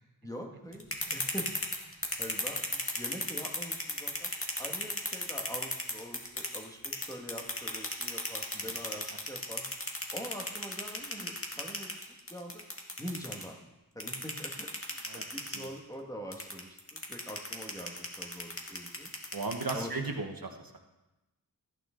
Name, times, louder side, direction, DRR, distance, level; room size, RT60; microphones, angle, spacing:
voice 1, 0.2-1.5 2.2-4.3 4.6-9.7 10.1-12.6 13.0-13.6 13.9-19.1 19.7-20.2, equal, 10° left, 0 dB, 1.8 m, -44 dB
sound 1, 0.7-6.6 6.8-13.4 14.0-15.7 16.3-20.1, left 1 dB, 35° left, 2.0 m, -34 dB
voice 2, 19.3-20.8, right 3 dB, 65° right, 4 dB, 1.2 m, -36 dB
15.0 x 9.3 x 3.9 m, 1.0 s
wide cardioid pair, 45°, 38 cm